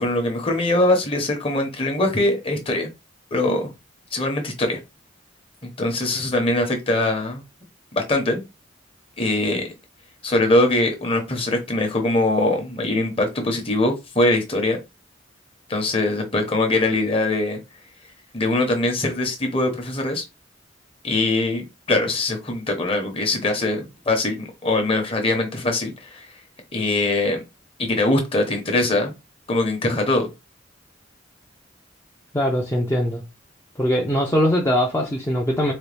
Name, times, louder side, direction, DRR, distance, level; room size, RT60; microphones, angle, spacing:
voice 1, 0.0-2.9 3.3-3.7 4.1-4.8 5.6-7.4 7.9-8.4 9.2-9.7 10.2-14.8 15.7-17.6 18.3-20.2 21.0-26.3 26.7-27.4 27.8-29.1 29.5-30.3, left 2 dB, 30° left, 1.0 m, -22 dB
voice 2, 32.3-33.2 33.8-35.7, equal, 15° left, 0.5 m, -21 dB
4.1 x 2.2 x 3.3 m
head